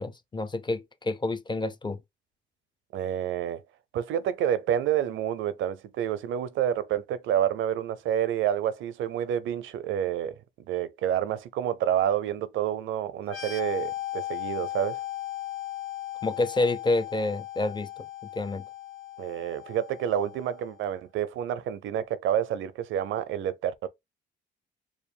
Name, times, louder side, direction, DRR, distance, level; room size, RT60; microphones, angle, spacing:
voice 1, 0.0-2.0 16.2-18.0 18.4-18.6, left 2 dB, 25° left, 0.5 m, -28 dB
voice 2, 2.9-3.6 3.9-10.4 10.7-15.0 19.2-23.9, right 10 dB, 80° right, 0.5 m, -28 dB
sound 1, 13.2-20.7, left 14 dB, 90° left, 0.7 m, -37 dB
4.8 x 2.2 x 3.4 m
cardioid pair, 90°, 20 cm